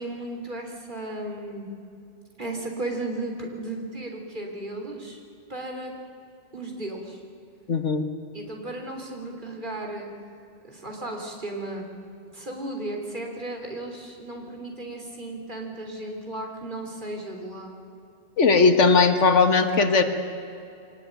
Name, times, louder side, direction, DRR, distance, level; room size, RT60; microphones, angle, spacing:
voice 1, 0.0-1.7 2.4-5.2 5.5-5.9 6.5-7.2 8.3-10.1 10.6-11.9 12.3-17.7, right 2 dB, 40° right, 2 dB, 3.6 m, -35 dB
voice 2, 7.7-8.0 18.4-20.0, left 4 dB, 75° left, 8 dB, 1.9 m, -18 dB
23.5 x 19.5 x 9.2 m, 2.6 s
omnidirectional pair, 1.2 m